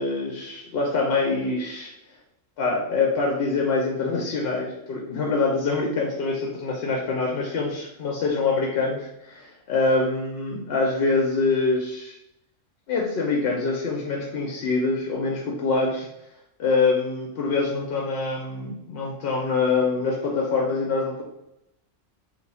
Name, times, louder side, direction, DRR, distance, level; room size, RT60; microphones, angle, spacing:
voice 1, 0.0-1.9 2.6-12.2 12.9-16.1 16.6-21.2, left 3 dB, 60° left, -2 dB, 0.7 m, -25 dB
2.7 x 2.3 x 4.0 m, 0.85 s
omnidirectional pair, 1.3 m